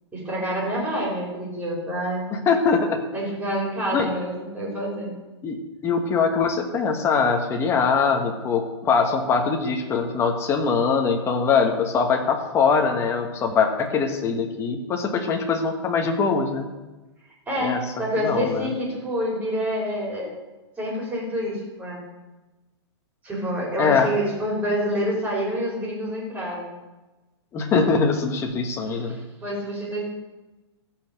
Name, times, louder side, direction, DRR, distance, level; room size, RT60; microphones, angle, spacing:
voice 1, 0.1-2.3 3.1-5.1 17.5-20.3 20.8-22.0 23.2-26.7 28.9-30.0, equal, 10° right, -4 dB, 4.5 m, -27 dB
voice 2, 2.3-3.0 3.9-4.1 5.4-16.7 17.6-17.8 18.2-18.7 23.8-24.1 27.5-29.2, left 5 dB, 15° left, 3 dB, 1.4 m, -22 dB
14.5 x 5.7 x 8.1 m, 1.1 s
hypercardioid pair, 155°, 15 cm